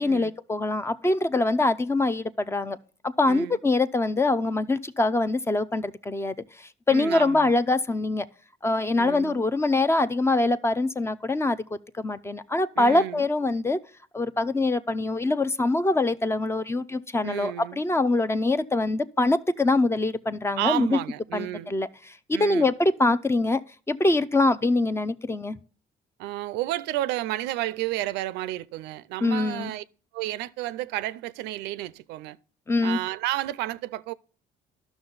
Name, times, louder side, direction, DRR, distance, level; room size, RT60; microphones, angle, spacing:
voice 1, 0.0-2.8 3.0-8.3 8.6-13.8 14.1-21.0 21.3-21.9 22.3-23.6 23.9-25.6 29.2-29.7 32.7-33.0, left 2 dB, 15° left, 0.5 m, -24 dB
voice 2, 3.3-3.6 6.9-7.5 9.0-9.4 12.8-13.2 17.2-17.8 20.6-21.7 22.3-22.7 26.2-29.8 30.1-32.4 32.8-34.1, right 16 dB, 90° right, 0.5 m, -31 dB
11.5 x 6.1 x 3.9 m
cardioid pair, 110°, 17 cm